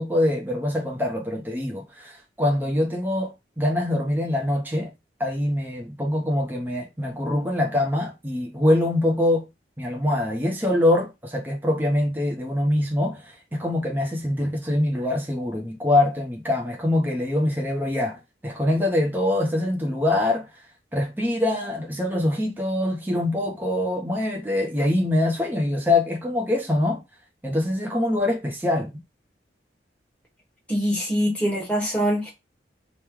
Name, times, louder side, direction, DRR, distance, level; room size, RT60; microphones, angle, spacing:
voice 1, 0.0-4.9 5.2-9.5 9.8-20.5 20.9-27.0 27.4-29.0, left 1 dB, 10° right, 0.6 m, -24 dB
voice 2, 30.7-32.3, equal, 5° left, 1.1 m, -23 dB
3.0 x 2.2 x 3.5 m
head